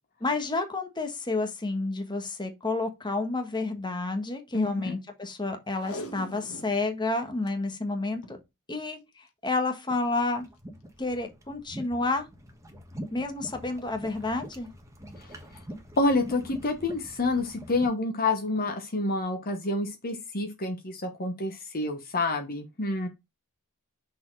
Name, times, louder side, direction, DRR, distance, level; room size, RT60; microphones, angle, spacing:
voice 1, 0.2-8.4 8.7-10.4 11.0-12.3 13.1-14.7, left 3 dB, 20° left, 1.3 m, -30 dB
voice 2, 4.5-5.0 15.2-15.3 16.0-23.1, left 2 dB, 40° left, 1.1 m, -28 dB
Packing tape duct tape, 5.7-6.8 7.2-7.3 7.5-7.6 8.1-8.4 9.5-9.7 10.3-10.4, left 1 dB, 70° left, 1.7 m, -41 dB
sound 1, 9.9-17.9, equal, 15° right, 1.3 m, -44 dB
6.2 x 4.3 x 3.9 m
head